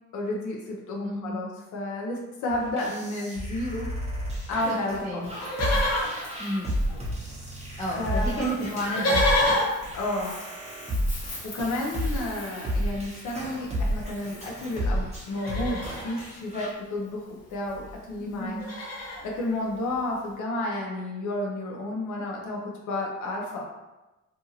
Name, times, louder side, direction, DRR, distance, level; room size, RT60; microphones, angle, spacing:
voice 1, 0.1-3.9 4.5-5.3 8.0-8.5 9.9-10.4 11.4-18.6 19.2-23.6, left 1 dB, 75° left, -1 dB, 0.7 m, -31 dB
voice 2, 1.0-1.4 4.6-5.3 5.7-5.8 6.4-6.7 7.8-9.6 18.2-18.6, right 1 dB, 15° left, -7 dB, 0.5 m, -32 dB
sound 1, 2.5-16.7, equal, 20° right, 0.9 m, -32 dB
Livestock farm animals working animals, 5.3-7.3 7.6-7.7 7.9-14.8 15.3-16.2 17.4-17.5 17.7-17.9 18.3-19.3 19.9-20.0, left 1 dB, 55° left, 1.0 m, -31 dB
2.7 x 2.4 x 2.8 m, 1.0 s
cardioid pair, 90°, 30 cm